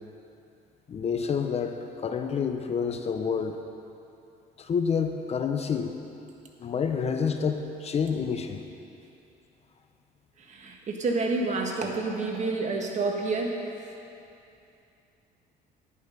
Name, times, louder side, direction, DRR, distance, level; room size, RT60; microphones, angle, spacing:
voice 1, 0.9-3.6 4.6-5.9 6.6-8.7, left 6 dB, 40° left, 6 dB, 0.8 m, -28 dB
voice 2, 10.4-13.6, right 3 dB, 45° right, 1 dB, 1.6 m, -29 dB
11.0 x 10.5 x 5.4 m, 2.7 s
cardioid pair, 110°, 17 cm